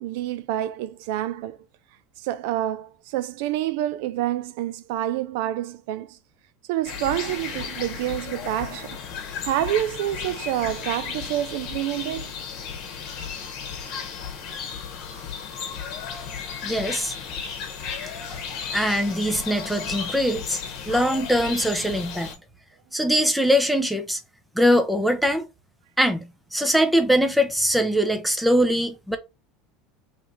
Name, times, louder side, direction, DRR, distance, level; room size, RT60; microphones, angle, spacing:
voice 1, 0.0-1.6 2.2-6.2 6.7-9.0 9.4-12.3, right 13 dB, 75° right, 0.3 m, -27 dB
sound 1, 6.9-22.4, left 6 dB, 55° left, 1.1 m, -34 dB
voice 2, 16.6-17.1 18.7-20.6 20.9-22.3 22.9-24.2 24.5-25.5 26.0-29.2, equal, ahead, 0.7 m, -22 dB
3.2 x 3.2 x 4.2 m
supercardioid pair, 120°, 0 cm